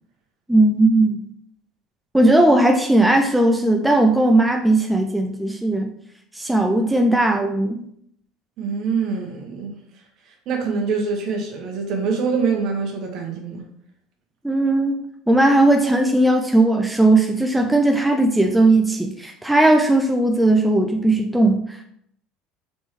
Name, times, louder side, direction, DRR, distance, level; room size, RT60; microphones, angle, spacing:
voice 1, 0.5-1.2 2.1-5.9 6.3-7.8 14.4-21.8, right 2 dB, 5° right, 0.3 m, -17 dB
voice 2, 8.6-9.7 10.5-13.6, right 5 dB, 55° right, 1.1 m, -24 dB
4.3 x 3.3 x 3.2 m
cardioid pair, 125°, 0 cm